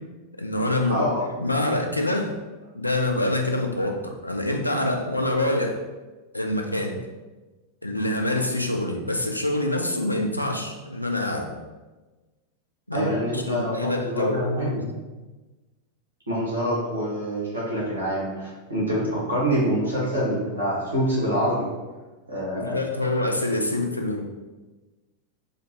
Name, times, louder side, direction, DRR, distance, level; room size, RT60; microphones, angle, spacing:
voice 1, 0.4-1.0 1.4-2.4 2.7-5.8 6.3-7.0 7.8-11.5 12.9-13.1 13.3-14.4 14.6-14.8 22.5-24.2, left 1 dB, 85° left, 3 dB, 0.3 m, -26 dB
voice 2, 0.9-1.2 12.9-14.8 16.3-21.7 22.3-22.8, equal, 85° right, -6 dB, 1.3 m, -26 dB
3.7 x 2.2 x 2.8 m, 1.2 s
figure-of-eight pair, 90°, 0 cm